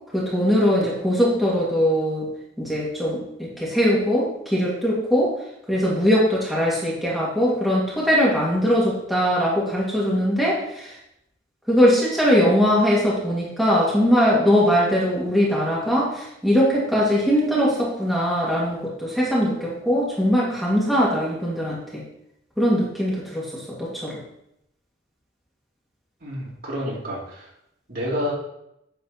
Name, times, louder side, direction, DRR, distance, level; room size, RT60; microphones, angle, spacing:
voice 1, 0.1-2.3 2.6-5.3 5.7-10.9 11.7-22.0 22.6-24.2, equal, ahead, -6 dB, 2.0 m, -21 dB
voice 2, 26.2-27.5 27.9-28.3, equal, 50° right, -4 dB, 2.9 m, -29 dB
8.3 x 6.7 x 4.2 m, 0.79 s
head